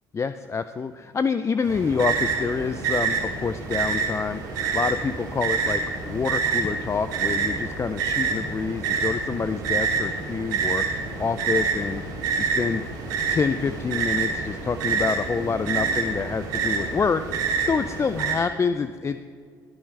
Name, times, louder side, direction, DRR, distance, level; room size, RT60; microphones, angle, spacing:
voice 1, 0.1-10.9 11.2-12.0 12.4-12.9 13.3-17.2 17.7-19.2, left 5 dB, 30° left, 11 dB, 0.5 m, -27 dB
sound 1, 1.6-18.3, right 5 dB, 85° right, 2.8 m, -27 dB
21.0 x 9.9 x 3.3 m, 2.1 s
hypercardioid pair, 65°, 10 cm